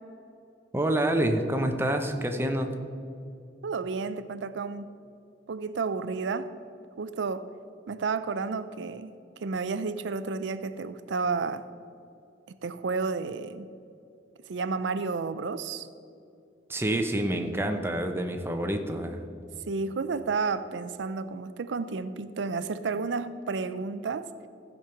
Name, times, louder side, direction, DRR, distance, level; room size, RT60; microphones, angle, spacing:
voice 1, 0.7-2.7 16.7-19.2, right 1 dB, 15° right, 5 dB, 0.7 m, -27 dB
voice 2, 3.6-4.9 5.5-6.5 7.0-7.5 7.9-9.1 9.4-11.6 12.6-13.7 14.5-15.9 19.7-24.3, right 4 dB, 90° right, 12 dB, 0.5 m, -31 dB
14.5 x 5.3 x 5.8 m, 2.5 s
head